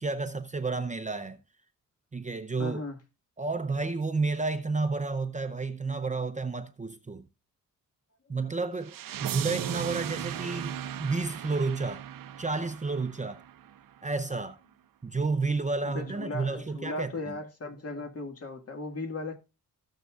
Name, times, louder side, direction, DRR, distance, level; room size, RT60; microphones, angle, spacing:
voice 1, 0.0-1.4 2.1-2.8 3.4-7.2 8.3-12.0 12.4-13.4 14.0-14.6 15.0-17.1, right 3 dB, 20° right, 0.7 m, -31 dB
voice 2, 2.6-3.0 15.8-19.4, left 2 dB, 45° left, 2.0 m, -37 dB
sound 1, 8.8-13.8, right 10 dB, 70° right, 0.8 m, -37 dB
16.5 x 6.6 x 2.4 m
cardioid pair, 120°, 35 cm